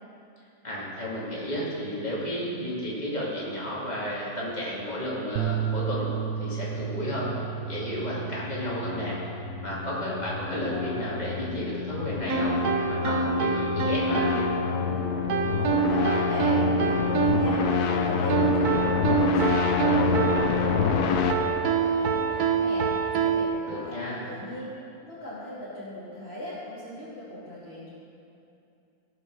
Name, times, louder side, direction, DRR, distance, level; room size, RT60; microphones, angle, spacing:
voice 1, 0.6-9.2 9.6-12.6 12.8-14.2 23.7-24.3, equal, 25° left, -7 dB, 2.8 m, -32 dB
sound 1, 5.4-11.6, right 9 dB, 65° right, 0.7 m, -34 dB
sound 2, 7.0-21.3, left 6 dB, 85° left, 1.4 m, -28 dB
sound 3, 12.3-23.5, right 6 dB, 90° right, 1.3 m, -26 dB
voice 2, 15.7-24.7 25.0-27.9, left 1 dB, 45° left, -10 dB, 2.4 m, -38 dB
17.0 x 6.6 x 6.4 m, 2.7 s
omnidirectional pair, 1.6 m